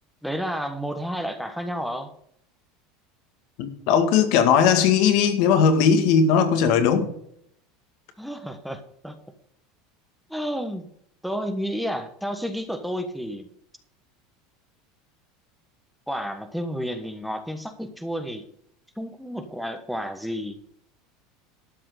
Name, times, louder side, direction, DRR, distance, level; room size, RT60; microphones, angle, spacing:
voice 1, 0.2-2.1 8.2-9.2 10.3-10.8 11.2-13.5 16.1-18.4 19.0-20.6, equal, ahead, 1.3 m, -31 dB
voice 2, 3.6-7.1, left 7 dB, 65° left, 2.0 m, -18 dB
12.5 x 5.8 x 6.7 m
supercardioid pair, 125°, 0 cm